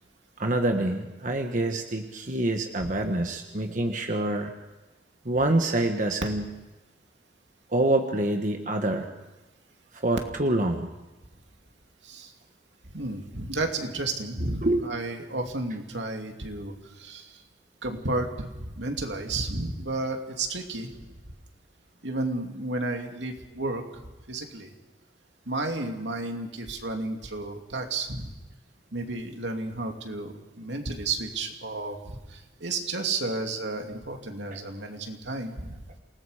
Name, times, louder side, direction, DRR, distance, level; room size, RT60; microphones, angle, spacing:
voice 1, 0.4-4.5 5.2-6.5 7.7-9.1 10.0-10.9 14.6-14.8 34.5-34.6, right 1 dB, 45° right, 4 dB, 1.5 m, -26 dB
voice 2, 12.9-16.7 17.0-17.3 17.8-20.9 22.0-23.8 24.3-24.7 25.5-28.3 28.9-32.0 32.3-35.8, right 2 dB, 85° right, 3 dB, 2.7 m, -32 dB
28.0 x 19.0 x 5.1 m, 1.1 s
head